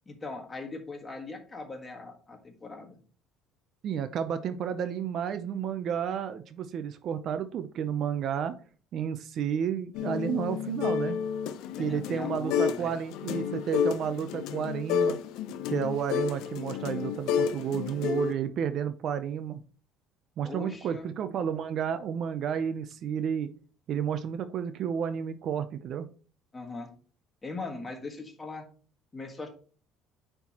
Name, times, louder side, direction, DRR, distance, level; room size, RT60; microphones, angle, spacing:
voice 1, 0.1-3.0 11.8-13.0 20.4-21.1 26.5-26.9 27.4-28.7 29.1-29.5, left 3 dB, 15° left, 3 dB, 1.5 m, -40 dB
voice 2, 3.8-8.6 8.9-11.2 11.8-15.2 15.7-19.6 20.4-23.5 23.9-26.1, right 8 dB, 45° right, 11 dB, 0.5 m, -31 dB
sound 1, 9.9-12.8 13.1-18.3, left 7 dB, 70° left, 0.6 m, -30 dB
9.4 x 4.5 x 2.9 m, 0.39 s
cardioid pair, 160°, 0 cm